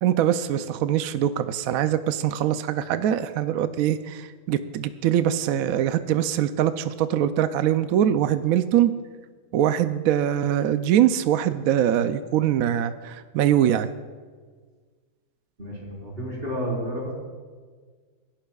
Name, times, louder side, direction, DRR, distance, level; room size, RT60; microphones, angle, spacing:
voice 1, 0.0-8.9 9.5-13.9, right 10 dB, 75° right, 11 dB, 1.0 m, -23 dB
voice 2, 15.6-17.1, equal, 35° right, -4 dB, 4.4 m, -31 dB
29.5 x 11.5 x 2.4 m, 1.5 s
omnidirectional pair, 1.5 m